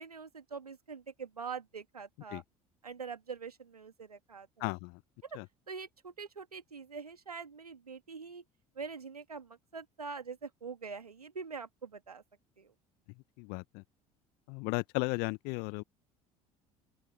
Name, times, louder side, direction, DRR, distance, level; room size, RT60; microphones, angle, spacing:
voice 1, 0.0-2.4 2.8-4.7 5.2-5.4 5.7-8.4 8.8-12.2 12.6-12.7, right 5 dB, 85° right, 2.1 m, -44 dB
voice 2, 4.6-5.0 5.3-5.5 13.4-13.8 14.5-15.8, left 30 dB, 60° left, 0.9 m, -35 dB
open air
figure-of-eight pair, 60°, 19 cm